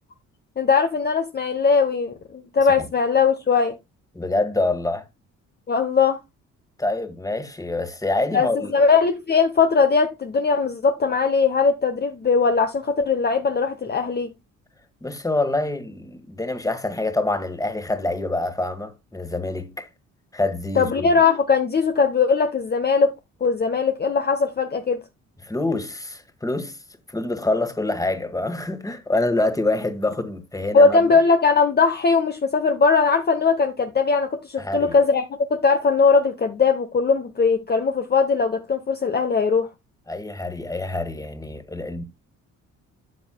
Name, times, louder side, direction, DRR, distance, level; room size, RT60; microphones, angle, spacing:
voice 1, 0.6-3.7 5.7-6.2 8.3-14.3 20.8-23.1 23.4-25.0 30.7-35.2 35.5-39.7, left 5 dB, 35° left, 0.9 m, -20 dB
voice 2, 4.1-5.0 6.8-8.7 15.0-19.9 20.3-21.1 25.4-26.8 27.1-31.2 34.6-35.0 40.1-42.0, left 2 dB, 10° left, 1.6 m, -26 dB
12.0 x 7.1 x 2.2 m
cardioid pair, 90°, 30 cm